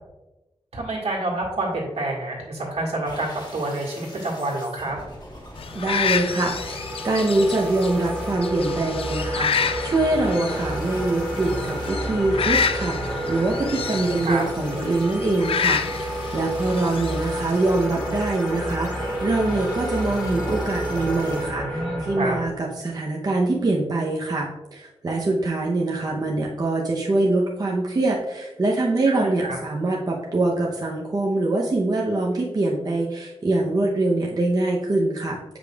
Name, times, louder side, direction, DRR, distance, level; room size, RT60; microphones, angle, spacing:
voice 1, 0.7-5.0 14.0-14.4 21.6-22.4 29.0-29.6, right 2 dB, 80° right, -3 dB, 1.8 m, -28 dB
sound 1, 3.0-21.4, left 1 dB, 45° left, 1.3 m, -43 dB
sound 2, 5.6-17.9, left 6 dB, 65° left, 0.3 m, -29 dB
sound 3, 5.7-22.5, right 1 dB, 10° right, 1.6 m, -30 dB
voice 2, 5.7-35.6, right 2 dB, 40° right, -2 dB, 0.7 m, -24 dB
8.0 x 5.1 x 2.3 m, 1.0 s
wide cardioid pair, 140°, 10 cm